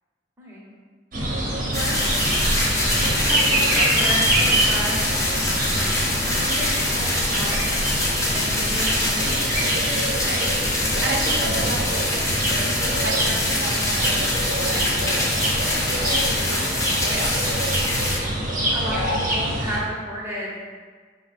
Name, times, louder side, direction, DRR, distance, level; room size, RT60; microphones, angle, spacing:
voice 1, 0.4-0.7 1.2-1.4 1.7-2.1 3.0-5.0 6.2-7.7 8.3-9.4 18.6-20.6, equal, 15° right, -6 dB, 0.8 m, -32 dB
sound 1, 1.1-19.8, right 1 dB, 50° right, 0.8 m, -25 dB
sound 2, 1.7-18.2, left 1 dB, 20° left, 0.7 m, -24 dB
voice 2, 11.0-12.6 12.9-15.9 16.4-17.8, right 2 dB, 80° right, -1 dB, 0.7 m, -33 dB
sound 3, 14.4-16.7 16.9-19.4, left 3 dB, 65° left, 0.5 m, -37 dB
5.1 x 2.2 x 4.0 m, 1.5 s
head